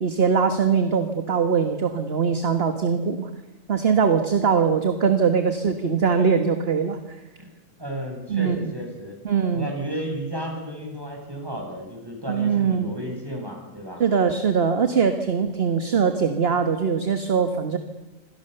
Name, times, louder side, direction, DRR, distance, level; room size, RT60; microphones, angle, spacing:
voice 1, 0.0-3.3 3.7-7.2 8.3-8.7 9.3-9.7 12.3-12.9 14.0-17.8, right 6 dB, 45° right, 7 dB, 1.7 m, -22 dB
voice 2, 7.8-9.2 9.5-14.0, equal, 15° right, 1 dB, 8.0 m, -33 dB
27.0 x 26.5 x 6.9 m, 0.99 s
omnidirectional pair, 1.4 m